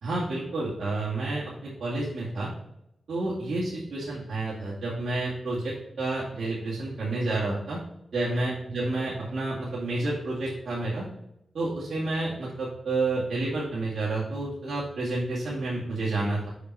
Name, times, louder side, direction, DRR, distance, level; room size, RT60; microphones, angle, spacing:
voice 1, 0.0-2.5 3.1-7.8 8.1-11.0 11.5-16.5, right 2 dB, 75° right, -8 dB, 2.3 m, -30 dB
6.9 x 4.6 x 4.7 m, 0.84 s
cardioid pair, 85°, 0 cm